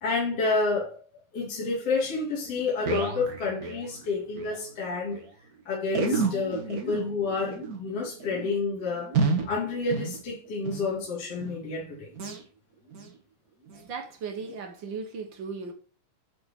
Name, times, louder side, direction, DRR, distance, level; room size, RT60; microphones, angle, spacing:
voice 1, 0.0-1.0 1.3-5.2 5.6-9.1 9.4-12.1, left 3 dB, 45° left, 3.3 m, -29 dB
sound 1, 2.1-2.2 2.4-4.6 4.8-4.9 5.1-5.3 5.9-10.9 11.3-11.7 12.1-12.4 12.9-13.2 13.7-13.8 14.5-14.6, right 4 dB, 80° right, 0.8 m, -31 dB
voice 2, 13.7-15.7, right 5 dB, 60° right, 1.2 m, -37 dB
9.7 x 4.7 x 5.3 m
omnidirectional pair, 4.0 m